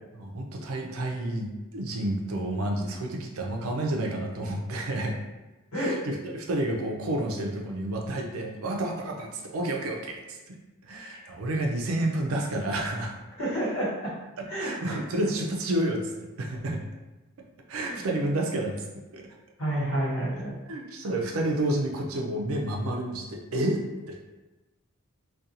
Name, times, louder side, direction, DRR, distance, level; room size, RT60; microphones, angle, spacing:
voice 1, 0.1-5.2 5.7-10.6 10.8-13.2 14.4-16.8 17.7-18.8 19.1-19.3 20.7-24.2, right 1 dB, 90° right, 1 dB, 0.5 m, -30 dB
voice 2, 13.4-14.1 14.5-15.0 17.8-18.0 19.6-20.6, right 1 dB, 80° left, -6 dB, 1.0 m, -29 dB
2.4 x 2.2 x 2.7 m, 1.1 s
head